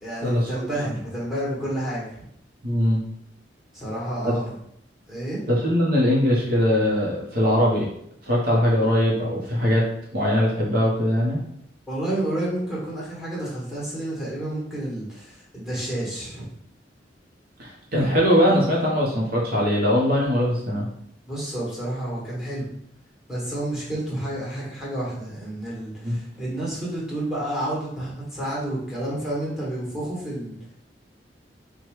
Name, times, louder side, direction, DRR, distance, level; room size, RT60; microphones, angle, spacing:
voice 1, 0.0-2.2 3.7-4.6 5.1-5.4 11.9-16.4 21.2-22.7 23.3-30.6, right 1 dB, 5° right, -7 dB, 1.3 m, -30 dB
voice 2, 2.6-3.0 5.5-7.9 8.3-9.8 10.1-11.4 17.6-20.9 26.0-26.1, equal, 55° right, -3 dB, 0.8 m, -21 dB
4.5 x 2.2 x 3.0 m, 0.72 s
head